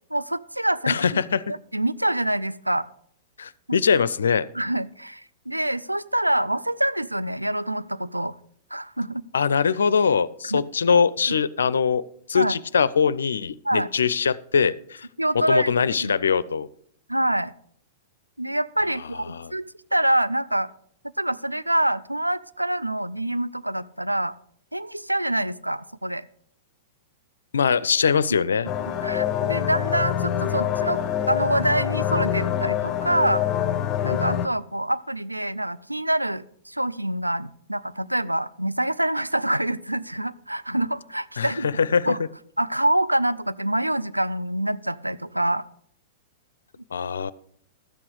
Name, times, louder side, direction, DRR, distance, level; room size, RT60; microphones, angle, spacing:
voice 1, 0.1-1.2 1.7-2.9 3.7-3.8 4.5-8.4 8.7-9.2 10.5-10.6 11.3-11.4 12.3-12.5 13.6-13.9 15.2-15.7 16.0-16.1 17.1-17.5 18.4-19.6 19.9-20.7 21.2-24.3 24.7-26.2 28.8-31.0 31.3-33.4 34.0-42.2 42.6-45.6, right 1 dB, 90° right, 13 dB, 0.4 m, -26 dB
voice 2, 0.9-1.4 3.4-4.5 9.3-12.0 12.3-15.1 15.5-16.7 19.3-19.5 27.5-28.7 41.4-42.2 46.9-47.3, left 6 dB, 70° left, 20 dB, 0.4 m, -22 dB
sound 1, 28.7-34.5, left 10 dB, 30° left, 0.7 m, -25 dB
12.5 x 8.3 x 4.9 m, 0.64 s
figure-of-eight pair, 100°, 0 cm